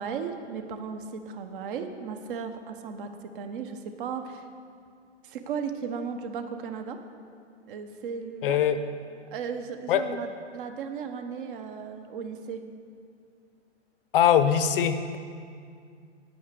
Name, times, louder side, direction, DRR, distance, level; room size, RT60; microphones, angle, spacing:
voice 1, 0.0-4.5 5.2-7.0 7.7-8.6 9.3-12.6, right 6 dB, 45° right, 7 dB, 1.1 m, -36 dB
voice 2, 8.4-8.8 9.9-10.0 14.1-15.2, left 9 dB, 50° left, 11 dB, 0.9 m, -22 dB
9.6 x 9.1 x 6.9 m, 2.2 s
hypercardioid pair, 135°, 36 cm